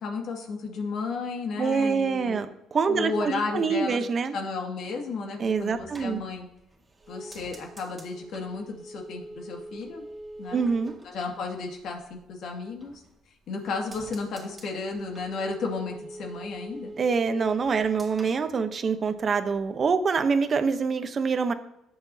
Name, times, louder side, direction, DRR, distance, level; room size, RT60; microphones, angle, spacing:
voice 1, 0.0-2.4 2.9-4.0 4.3-6.5 7.1-10.0 10.4-10.6 11.0-13.0 13.5-16.9, left 4 dB, 65° left, 1 dB, 2.1 m, -33 dB
voice 2, 1.6-4.3 5.4-6.2 10.5-10.9 17.0-21.5, right 5 dB, 40° right, 9 dB, 0.9 m, -25 dB
sound 1, 5.5-12.2 12.6-13.3 13.6-19.3 19.6-20.1, right 1 dB, 20° right, 2.0 m, -45 dB
17.5 x 6.8 x 2.8 m, 0.83 s
cardioid pair, 110°, 0 cm